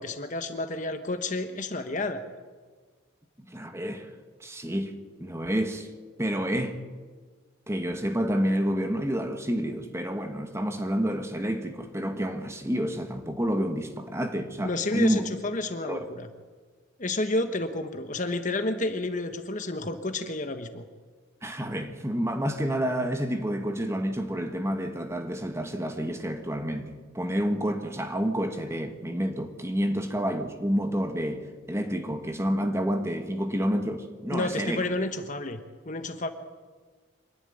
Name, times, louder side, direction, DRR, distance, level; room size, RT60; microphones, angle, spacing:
voice 1, 0.0-2.2 14.6-16.3 17.0-20.8 34.3-35.6 35.8-36.3, left 2 dB, 35° left, 1.3 m, -30 dB
voice 2, 3.5-4.1 4.4-4.9 5.2-5.9 6.2-6.8 7.7-15.2 15.8-16.0 21.4-34.8, equal, 15° right, 1.5 m, -29 dB
25.5 x 11.5 x 9.9 m
head